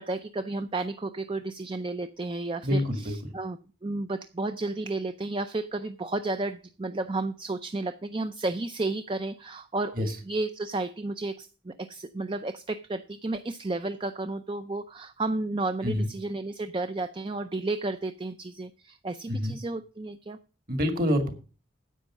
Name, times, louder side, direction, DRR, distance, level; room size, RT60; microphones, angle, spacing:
voice 1, 0.0-20.4, right 2 dB, 25° right, 10 dB, 0.4 m, -32 dB
voice 2, 2.6-3.3 9.9-10.2 15.8-16.1 19.3-19.6 20.7-21.3, left 1 dB, 45° right, 7 dB, 2.0 m, -27 dB
10.0 x 8.2 x 6.1 m, 0.36 s
head